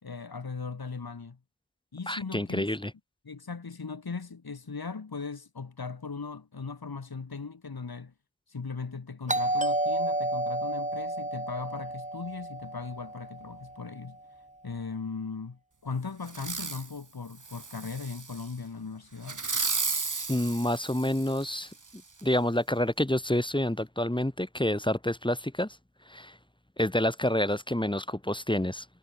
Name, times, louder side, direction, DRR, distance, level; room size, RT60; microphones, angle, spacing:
voice 1, 0.0-1.4 1.9-2.7 3.2-8.1 8.5-14.2 14.6-19.4, left 4 dB, 90° left, 4.3 m, -38 dB
voice 2, 2.1-2.9 20.3-21.7 22.2-25.8 26.1-26.4 26.8-28.8, left 1 dB, 15° left, 2.9 m, -28 dB
Doorbell, 9.3-13.9, right 1 dB, 20° right, 5.3 m, -31 dB
Fireworks, 16.3-16.9 17.4-18.5 19.2-21.6 22.2-22.3, right 4 dB, 55° right, 3.0 m, -34 dB
wide cardioid pair, 70°, 36 cm